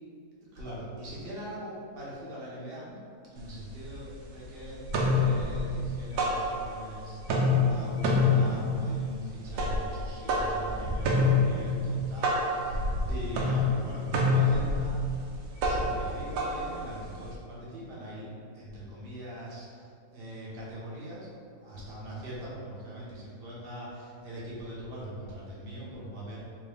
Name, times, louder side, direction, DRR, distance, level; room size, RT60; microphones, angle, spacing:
voice 1, 0.5-3.0 3.3-15.0 15.6-18.3 18.5-26.4, right 1 dB, 45° right, -6 dB, 1.0 m, -42 dB
sound 1, 3.4-3.5 3.8-4.4 4.7-6.9 7.2-17.3, left 2 dB, 85° right, 1.1 m, -27 dB
3.7 x 2.5 x 3.3 m, 2.2 s
omnidirectional pair, 1.6 m